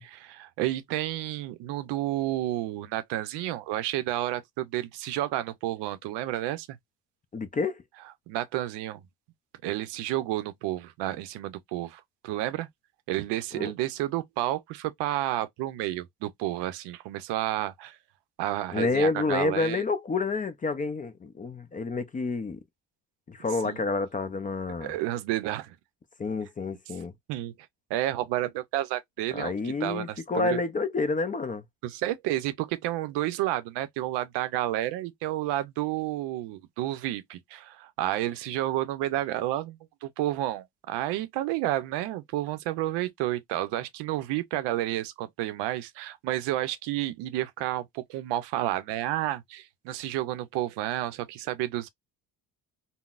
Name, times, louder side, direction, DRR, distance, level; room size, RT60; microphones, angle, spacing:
voice 1, 0.0-6.8 8.3-9.0 9.6-12.7 13.1-18.0 18.4-19.8 23.6-23.8 24.8-25.8 27.3-27.5 27.9-30.6 31.8-51.9, right 14 dB, 85° right, 0.6 m, -31 dB
voice 2, 7.3-7.8 13.5-13.7 18.7-22.6 23.3-24.9 26.2-27.1 29.3-31.6, left 3 dB, 20° left, 0.4 m, -29 dB
3.8 x 2.0 x 2.3 m
cardioid pair, 105°, 40 cm